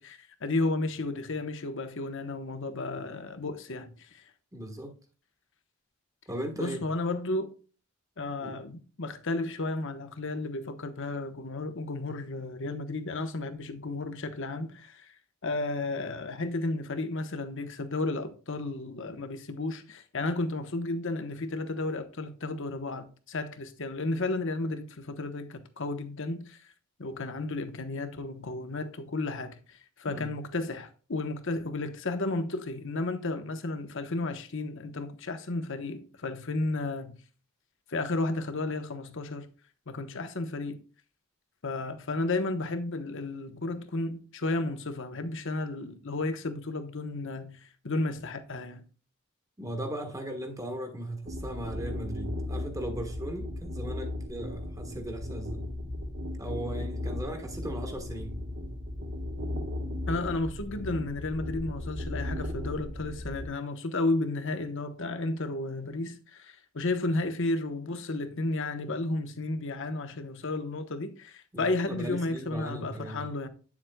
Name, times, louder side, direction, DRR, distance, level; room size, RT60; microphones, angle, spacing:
voice 1, 0.0-4.2 6.6-7.5 8.2-15.1 15.4-26.7 27.0-37.2 37.9-39.5 39.9-40.8 41.6-48.8 60.1-73.5, left 2 dB, 60° left, 1.0 m, -33 dB
voice 2, 4.5-4.9 6.3-6.8 8.4-8.6 30.0-30.3 49.6-55.7 56.4-58.4 71.5-73.3, right 1 dB, 15° right, 1.3 m, -37 dB
sound 1, 51.3-63.5, left 1 dB, 60° right, 1.2 m, -36 dB
9.0 x 7.3 x 2.3 m
head